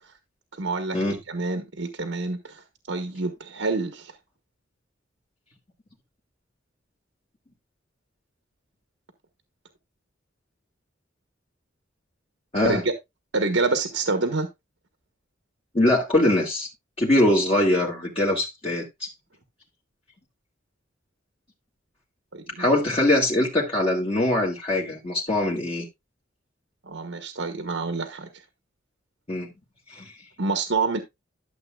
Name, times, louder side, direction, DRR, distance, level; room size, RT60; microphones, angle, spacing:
voice 1, 0.5-1.0 1.3-4.1 12.6-12.9 13.3-14.5 22.3-22.6 26.8-28.3 30.4-31.0, right 3 dB, 75° right, 1.2 m, -27 dB
voice 2, 15.7-16.7 17.0-19.1 22.6-25.8 29.3-29.5 29.9-30.1, left 1 dB, 30° left, 1.9 m, -22 dB
12.5 x 7.2 x 2.3 m
head